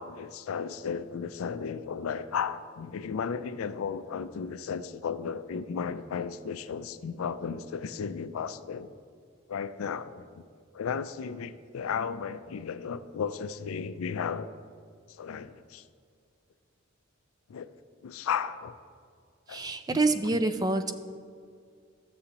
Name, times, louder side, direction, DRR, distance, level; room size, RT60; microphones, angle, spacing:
voice 1, 0.0-9.0 9.5-10.4 10.7-14.5 15.1-15.8 17.5-17.7 18.0-18.7 19.5-20.0 20.3-20.4, left 6 dB, 80° left, 0.4 m, -34 dB
voice 2, 19.5-20.9, right 2 dB, 20° right, 0.3 m, -26 dB
13.0 x 6.9 x 2.9 m
head